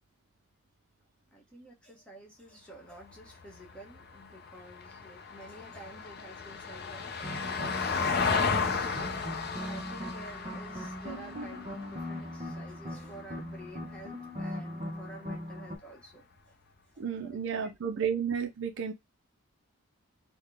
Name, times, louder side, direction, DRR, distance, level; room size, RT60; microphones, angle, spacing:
voice 1, 1.3-8.8 9.0-16.6 16.9-17.7, right 1 dB, 5° left, 1.0 m, -50 dB
Vehicle, 2.9-13.4 15.7-15.8, left 5 dB, 50° left, 0.5 m, -34 dB
sound 1, 7.2-15.8, equal, 30° right, 0.7 m, -40 dB
voice 2, 17.0-18.9, right 7 dB, 60° right, 0.4 m, -32 dB
3.7 x 2.2 x 3.3 m
head